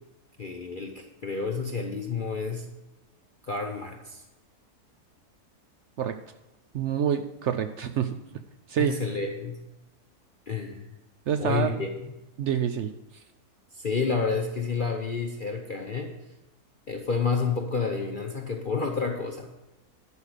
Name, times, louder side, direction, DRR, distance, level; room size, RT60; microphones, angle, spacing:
voice 1, 0.4-2.6 3.4-4.2 8.8-9.6 10.5-10.8 11.4-12.1 13.7-16.1 16.9-19.5, left 5 dB, 45° left, 2 dB, 0.8 m, -30 dB
voice 2, 6.7-8.2 8.7-9.0 11.3-11.8 12.4-12.9, right 8 dB, 65° right, 9 dB, 0.7 m, -27 dB
11.0 x 5.2 x 6.5 m, 1.0 s
omnidirectional pair, 1.6 m